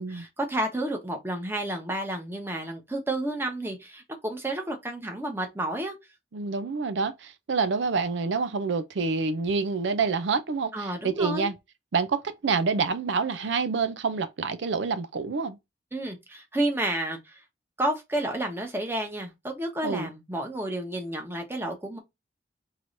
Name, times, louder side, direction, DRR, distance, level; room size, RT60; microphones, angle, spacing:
voice 1, 0.0-5.9 10.7-11.5 15.9-17.4 17.8-22.0, right 1 dB, 10° right, 1.0 m, -31 dB
voice 2, 6.3-11.5 11.9-15.6 19.8-20.1, right 4 dB, 80° right, 0.5 m, -27 dB
4.8 x 3.0 x 2.5 m
head